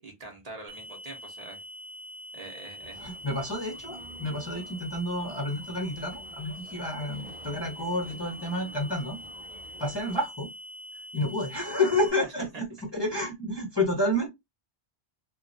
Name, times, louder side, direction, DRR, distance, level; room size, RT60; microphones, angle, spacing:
voice 1, 0.0-1.6 2.3-3.1, right 2 dB, 40° right, 0.8 m, -44 dB
sound 1, 0.7-12.1, equal, 85° right, 0.9 m, -44 dB
sound 2, 2.8-10.2, right 1 dB, 5° right, 1.0 m, -50 dB
voice 2, 3.0-9.2 9.8-10.5 11.1-12.7 12.9-14.3, left 1 dB, 30° left, 0.6 m, -29 dB
2.9 x 2.2 x 2.5 m
omnidirectional pair, 1.1 m